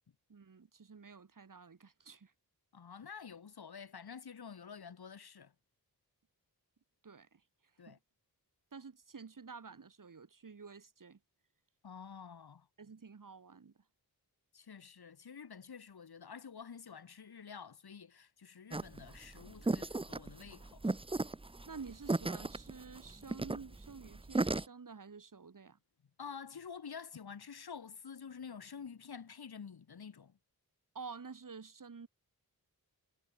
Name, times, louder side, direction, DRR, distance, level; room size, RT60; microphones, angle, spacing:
voice 1, 0.3-2.3 7.0-7.4 7.9-8.0 8.7-11.2 12.8-13.7 21.6-25.8 30.9-32.1, right 5 dB, 55° right, 2.2 m, -50 dB
voice 2, 2.7-5.5 7.8-8.0 11.8-12.7 14.5-21.0 26.2-30.4, left 6 dB, 75° left, 1.8 m, -49 dB
sound 1, 18.7-24.6, right 2 dB, 15° right, 0.7 m, -36 dB
wide cardioid pair, 90°, 38 cm